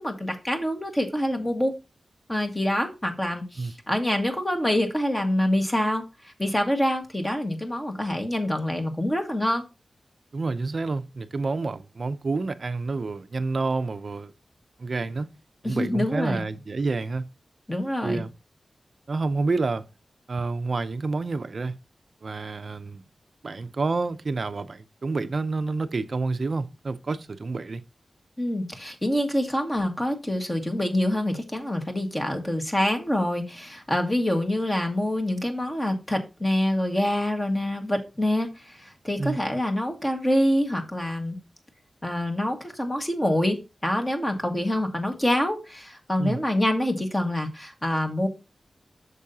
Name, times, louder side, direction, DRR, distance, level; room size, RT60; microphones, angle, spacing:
voice 1, 0.0-1.7 2.3-9.6 15.6-16.4 17.7-18.2 28.4-41.4 42.0-48.3, left 1 dB, 20° left, 1.6 m, -26 dB
voice 2, 10.3-14.3 14.8-15.3 15.6-17.3 18.0-18.3 19.1-19.8 20.3-21.7 22.2-23.0 23.4-27.8 39.2-39.4 46.2-46.4, right 3 dB, 55° right, 0.5 m, -28 dB
8.5 x 6.7 x 2.8 m
wide cardioid pair, 105°, 0 cm